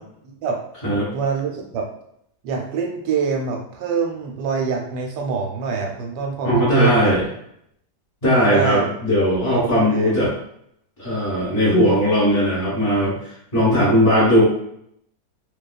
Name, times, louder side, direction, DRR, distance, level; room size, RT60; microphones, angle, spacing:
voice 1, 0.2-0.6 1.1-1.9 2.4-7.2 8.5-8.9 9.6-10.2, right 5 dB, 85° right, 0 dB, 1.2 m, -25 dB
voice 2, 6.4-7.2 8.2-10.3 11.0-14.4, equal, 25° left, -11 dB, 1.2 m, -18 dB
2.7 x 2.2 x 2.3 m, 0.73 s
omnidirectional pair, 1.8 m